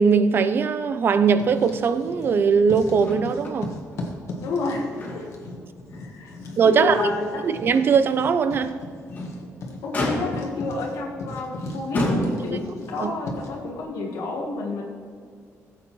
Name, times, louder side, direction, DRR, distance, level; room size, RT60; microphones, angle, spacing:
voice 1, 0.0-3.7 6.6-7.0 7.4-8.7 13.0-13.1, right 6 dB, 40° right, 0.5 m, -20 dB
Writing, 1.2-2.4 2.7-13.6, left 2 dB, 55° left, 1.5 m, -38 dB
Motor vehicle (road), 3.0-3.6 3.9-4.0 4.5-5.5 5.9-6.0 6.6-6.7 8.9-9.4 9.9-10.6 11.4-11.5 11.9-12.7 13.8-13.9, left 1 dB, 30° left, 2.6 m, -28 dB
voice 2, 4.4-5.3 5.9-7.5 9.8-14.8, left 3 dB, 85° left, 1.2 m, -30 dB
16.5 x 7.9 x 3.0 m
cardioid pair, 160°, 6 cm